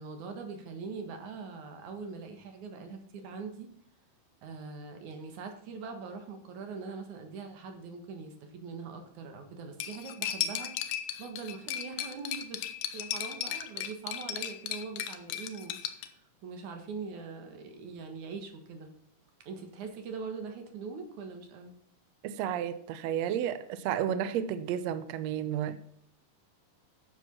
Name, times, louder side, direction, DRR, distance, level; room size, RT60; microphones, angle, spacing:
voice 1, 0.0-3.7 4.4-10.7 11.2-12.6 12.9-18.9 19.4-21.7, right 5 dB, 65° right, 5 dB, 2.9 m, -42 dB
Cutlery silverware, 9.8-16.1, left 10 dB, 75° left, 2.0 m, -36 dB
voice 2, 22.2-25.8, right 9 dB, 80° right, 12 dB, 1.5 m, -32 dB
10.5 x 7.1 x 5.9 m, 0.67 s
omnidirectional pair, 3.9 m